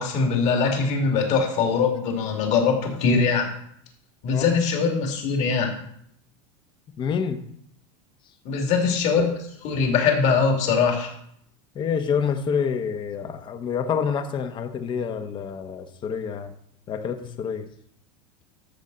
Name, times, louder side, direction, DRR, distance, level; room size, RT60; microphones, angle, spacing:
voice 1, 0.0-3.5 4.2-5.7 8.4-9.3 9.6-11.1, left 5 dB, 45° left, 2 dB, 2.4 m, -22 dB
voice 2, 7.0-7.4 11.7-16.5 16.9-17.7, left 6 dB, 30° left, 9 dB, 0.9 m, -27 dB
13.0 x 6.6 x 3.9 m, 0.69 s
supercardioid pair, 140°, 16 cm